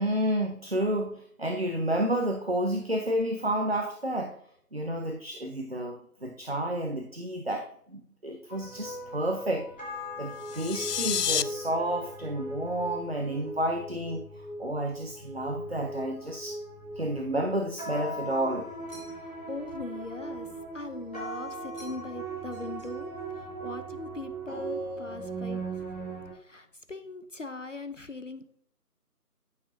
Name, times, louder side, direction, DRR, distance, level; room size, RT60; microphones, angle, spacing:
voice 1, 0.0-4.4 4.7-9.7 10.2-16.6 17.0-18.7, right 1 dB, 40° right, 4 dB, 0.7 m, -30 dB
sound 1, 8.5-26.3, right 2 dB, 5° left, 2.6 m, -39 dB
sound 2, 10.4-11.4, left 8 dB, 90° left, 0.6 m, -29 dB
sound 3, 18.9-19.5 21.7-22.2 22.5-23.3, right 1 dB, 20° right, 3.5 m, -54 dB
voice 2, 19.2-20.5 20.7-25.8 26.3-28.5, left 3 dB, 55° left, 10 dB, 0.7 m, -41 dB
13.5 x 6.3 x 2.7 m, 0.65 s
figure-of-eight pair, 175°, 46 cm